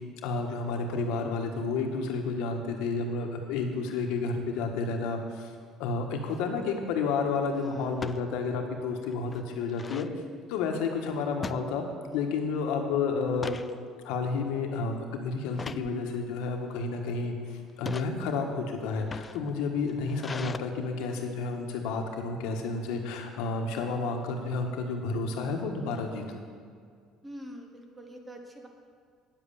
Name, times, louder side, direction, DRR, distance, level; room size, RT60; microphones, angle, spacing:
voice 1, 0.2-5.5 5.8-10.1 10.5-11.9 12.1-13.6 14.0-26.4, left 4 dB, 85° left, 3 dB, 1.4 m, -31 dB
sound 1, 6.2-6.5 7.9-8.2 8.7-8.8 9.1-10.1 11.4-12.2 12.6-12.8 13.2-13.7 14.3-14.6 15.5-15.9 16.7-17.1 17.7-18.1 18.9-20.6, left 4 dB, 20° left, 0.3 m, -40 dB
voice 2, 7.5-7.9 27.2-28.7, equal, 15° right, 3 dB, 1.2 m, -44 dB
9.5 x 7.7 x 7.0 m, 2.1 s
cardioid pair, 145°, 0 cm